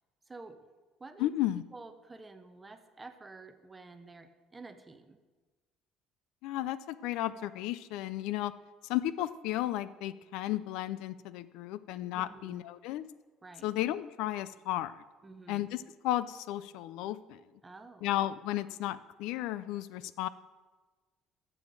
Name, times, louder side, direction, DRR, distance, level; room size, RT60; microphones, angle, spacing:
voice 1, 0.3-0.6 1.0-1.4 1.7-5.2 12.1-12.6 13.4-13.8 15.2-15.7 17.6-18.1, right 3 dB, 15° right, 9 dB, 0.6 m, -50 dB
voice 2, 1.2-1.6 6.4-8.5 8.9-13.0 13.6-14.9 15.5-17.4 18.0-20.3, left 14 dB, 80° left, 16 dB, 0.4 m, -34 dB
7.2 x 7.1 x 7.5 m, 1.3 s
cardioid pair, 155°, 0 cm